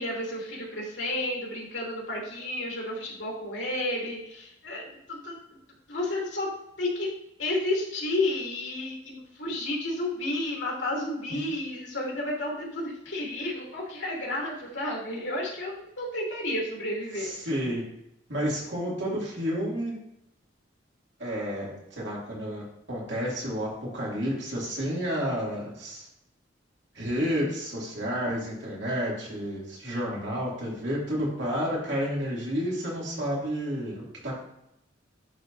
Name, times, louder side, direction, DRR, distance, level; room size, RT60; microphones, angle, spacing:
voice 1, 0.0-5.4 5.9-6.5 6.8-7.1 7.4-17.3, left 1 dB, 75° left, -3 dB, 2.5 m, -31 dB
voice 2, 17.2-17.8 18.3-19.9 21.2-22.6 22.9-26.1 26.9-34.4, equal, 65° right, -4 dB, 2.4 m, -30 dB
11.0 x 4.5 x 2.6 m, 0.81 s
head